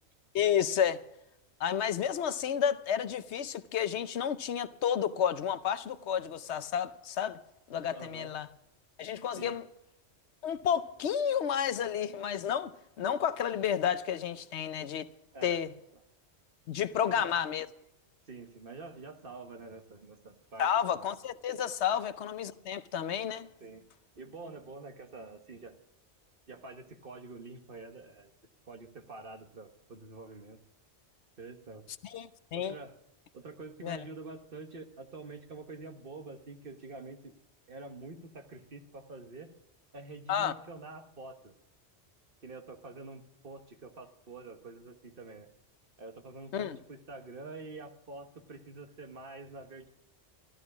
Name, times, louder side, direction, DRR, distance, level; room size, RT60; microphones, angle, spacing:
voice 1, 0.3-1.0 1.6-7.4 7.7-8.5 9.0-9.7 10.4-15.1 15.4-15.7 16.7-17.7 20.6-23.5 32.0-32.8 33.8-34.0 40.3-40.5 46.5-46.8, left 8 dB, 75° left, 1.0 m, -31 dB
voice 2, 7.9-8.3 9.4-9.5 15.3-15.6 17.0-17.3 18.3-21.1 21.9-22.0 23.6-23.8 24.2-25.8 26.5-28.3 28.7-30.6 31.4-31.8 32.5-33.0 33.3-37.3 37.7-39.5 39.9-41.5 42.4-45.5 46.0-49.9, right 3 dB, 55° right, 1.5 m, -47 dB
13.5 x 12.5 x 6.0 m
omnidirectional pair, 1.2 m